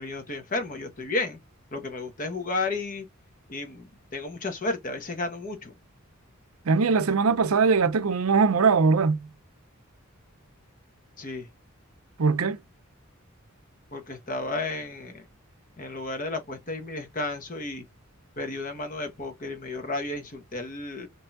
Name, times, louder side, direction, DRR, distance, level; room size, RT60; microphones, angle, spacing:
voice 1, 0.0-1.4 1.7-3.1 3.5-5.7 11.2-11.5 13.9-15.3 15.8-17.8 18.4-21.1, left 2 dB, 40° left, 1.1 m, -32 dB
voice 2, 6.7-9.3 12.2-12.6, right 5 dB, 80° right, 0.6 m, -21 dB
5.2 x 2.8 x 2.5 m
head